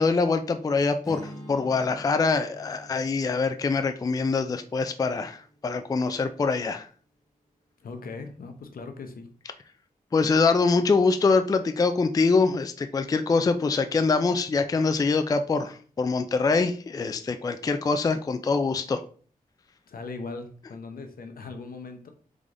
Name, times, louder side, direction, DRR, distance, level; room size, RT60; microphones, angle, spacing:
voice 1, 0.0-6.9 10.1-19.0, left 4 dB, 25° left, 9 dB, 0.3 m, -24 dB
Strum, 1.0-6.4, equal, ahead, 1.6 m, -47 dB
voice 2, 7.8-9.3 19.9-22.1, left 4 dB, 75° left, 6 dB, 0.8 m, -39 dB
3.8 x 3.7 x 3.3 m, 0.44 s
wide cardioid pair, 90°, 15 cm